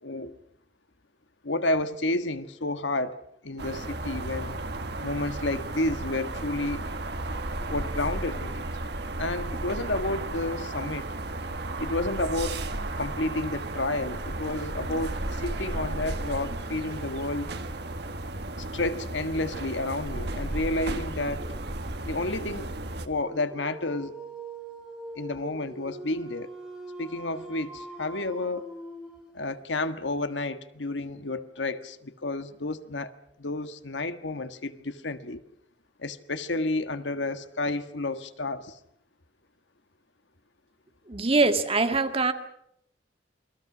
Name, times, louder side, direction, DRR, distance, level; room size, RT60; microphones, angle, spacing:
voice 1, 0.0-0.4 1.4-4.6 5.0-6.9 7.7-8.7 9.2-11.1 11.8-12.6 13.0-17.5 18.7-21.5 22.0-22.7 23.0-24.2 25.1-26.5 27.0-28.7 29.3-33.1 33.4-35.4 36.0-38.8, left 2 dB, 80° left, 1.5 m, -31 dB
sound 1, 3.6-23.1, right 2 dB, 65° right, 1.8 m, -34 dB
Dog, 23.1-29.5, right 2 dB, 5° right, 4.8 m, -42 dB
voice 2, 41.1-42.3, right 3 dB, 30° right, 1.8 m, -23 dB
28.5 x 22.0 x 6.1 m
head